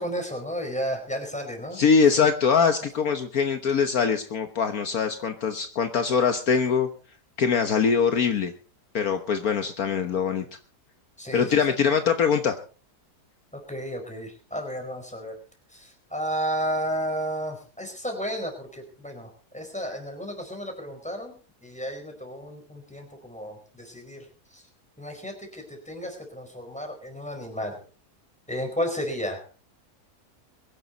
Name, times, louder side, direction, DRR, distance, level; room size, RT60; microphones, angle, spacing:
voice 1, 0.0-1.8 2.2-2.3 11.2-11.7 13.5-15.4 15.7-21.3 21.6-24.3 24.5-24.6 25.0-27.8 28.5-29.4, equal, 5° left, 4 dB, 4.7 m, -33 dB
voice 2, 1.7-6.9 7.4-8.5 8.9-10.4 11.3-12.6, left 6 dB, 65° left, 7 dB, 1.5 m, -23 dB
22.5 x 11.0 x 4.0 m, 0.38 s
omnidirectional pair, 1.7 m